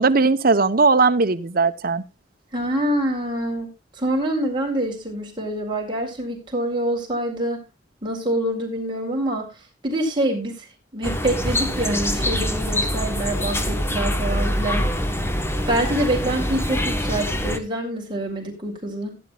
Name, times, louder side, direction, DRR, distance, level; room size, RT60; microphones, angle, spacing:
voice 1, 0.0-2.0, right 4 dB, 55° right, 0.9 m, -18 dB
voice 2, 2.5-3.7 4.0-7.6 8.0-9.5 9.8-10.7 10.9-15.2 15.7-19.2, right 1 dB, 25° right, 4.5 m, -26 dB
sound 1, 11.0-17.6, equal, 15° left, 1.3 m, -24 dB
16.5 x 10.5 x 2.4 m
head